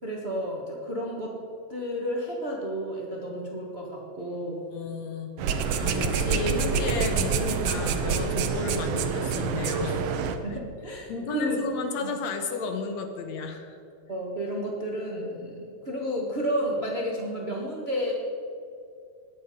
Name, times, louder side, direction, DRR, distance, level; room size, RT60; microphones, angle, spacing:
voice 1, 0.0-1.3 1.7-4.6 10.4-11.6 12.0-12.1 14.1-18.1, equal, 30° right, -2 dB, 1.1 m, -31 dB
voice 2, 4.7-10.1 11.1-13.8, left 4 dB, 70° left, 6 dB, 2.1 m, -33 dB
sound 1, 5.4-10.4, right 5 dB, 70° right, 1.6 m, -27 dB
20.5 x 7.7 x 5.1 m, 2.5 s
omnidirectional pair, 3.4 m